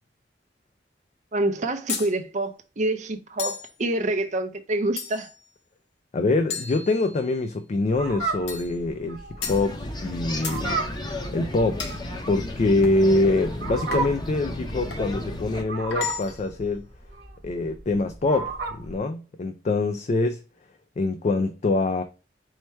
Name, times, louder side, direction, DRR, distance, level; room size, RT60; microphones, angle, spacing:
voice 1, 1.3-5.3, right 2 dB, 45° right, 0.6 m, -27 dB
sound 1, 1.9-2.1 3.4-3.7 5.0-5.4 6.5-7.4 8.5-8.8 9.4-9.7 10.4-10.7 11.8-12.0 12.8-13.1 13.9-14.2 14.9-15.1 15.9-16.5, left 6 dB, 80° left, 1.0 m, -34 dB
voice 2, 6.1-10.8 11.3-12.0 12.3-16.9 17.4-20.4 21.0-22.0, left 2 dB, 40° left, 0.3 m, -24 dB
Fowl, 7.9-19.0, right 3 dB, 65° right, 1.2 m, -33 dB
sound 2, 9.4-15.6, left 1 dB, 25° left, 0.8 m, -34 dB
4.7 x 2.1 x 4.3 m
head